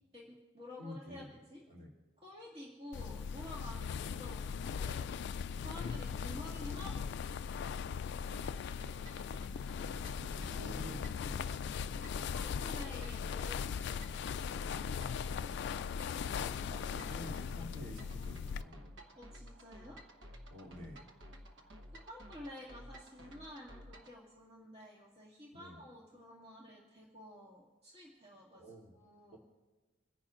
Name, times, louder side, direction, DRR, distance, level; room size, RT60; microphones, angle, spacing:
voice 1, 0.1-1.6 2.2-5.1 5.5-7.4 11.9-14.1 19.2-20.0 22.1-28.7 28.9-29.4, left 1 dB, 30° right, -4 dB, 2.1 m, -51 dB
voice 2, 0.8-1.3 1.7-1.9 3.8-3.9 9.2-11.7 16.4-18.9 20.5-21.1 25.5-25.8 28.5-28.9 29.3-29.4, left 1 dB, 45° right, -3 dB, 2.6 m, -50 dB
sound 1, 2.9-18.6, left 6 dB, 60° left, 0.3 m, -39 dB
sound 2, 8.3-24.2, equal, 65° right, 1.0 m, -54 dB
28.5 x 10.0 x 2.5 m, 1.2 s
head